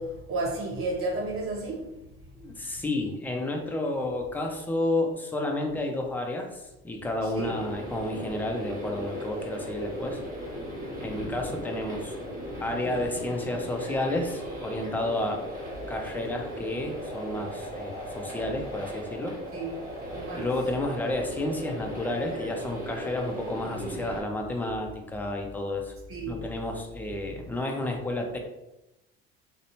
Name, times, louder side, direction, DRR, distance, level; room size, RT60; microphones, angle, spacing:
voice 1, 0.0-1.9 7.2-7.6 19.5-20.5 23.7-24.1 26.1-26.4, right 2 dB, 50° right, -2 dB, 1.1 m, -33 dB
voice 2, 2.3-10.2 11.0-12.2 12.6-15.4 15.9-19.3 20.4-25.9 26.3-28.4, left 1 dB, 5° left, 2 dB, 0.4 m, -31 dB
sound 1, 7.4-24.2, equal, 30° right, 1.5 m, -37 dB
2.6 x 2.1 x 2.8 m, 0.94 s
supercardioid pair, 80°, 29 cm